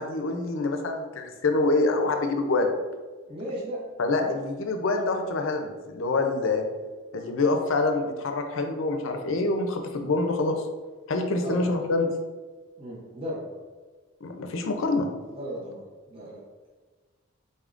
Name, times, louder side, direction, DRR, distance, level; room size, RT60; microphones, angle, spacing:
voice 1, 0.0-2.7 4.0-6.6 7.1-10.6 11.1-12.1 14.2-15.1, left 3 dB, 65° left, 5 dB, 0.5 m, -26 dB
voice 2, 3.3-3.8 4.2-4.4 11.4-11.8 12.8-13.6 15.3-16.4, equal, 25° right, -6 dB, 0.7 m, -36 dB
4.1 x 3.5 x 2.4 m, 1.4 s
head